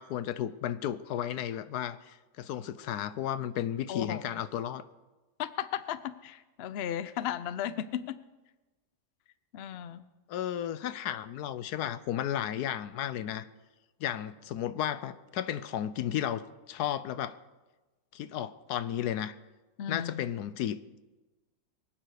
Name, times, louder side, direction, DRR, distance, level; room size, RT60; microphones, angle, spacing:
voice 1, 0.0-4.8 10.3-13.5 14.0-17.4 18.1-19.3 19.9-20.8, left 10 dB, 80° left, 14 dB, 1.2 m, -33 dB
voice 2, 3.9-4.3 5.4-8.2 9.5-10.0 19.8-20.2, left 10 dB, 60° left, 14 dB, 0.7 m, -35 dB
24.0 x 9.1 x 4.9 m, 1.2 s
omnidirectional pair, 1.7 m